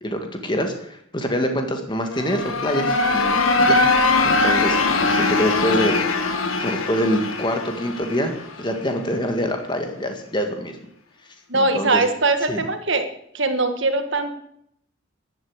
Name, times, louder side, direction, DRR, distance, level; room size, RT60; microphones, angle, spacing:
voice 1, 0.0-3.8 4.2-6.0 6.6-10.7 11.5-12.0 12.5-12.7, equal, 20° left, 5 dB, 1.9 m, -25 dB
sound 1, 2.0-8.8, left 3 dB, 80° left, 1.8 m, -21 dB
voice 2, 11.5-13.1 13.3-14.3, right 2 dB, 60° right, 7 dB, 1.8 m, -21 dB
12.0 x 10.5 x 8.1 m, 0.71 s
head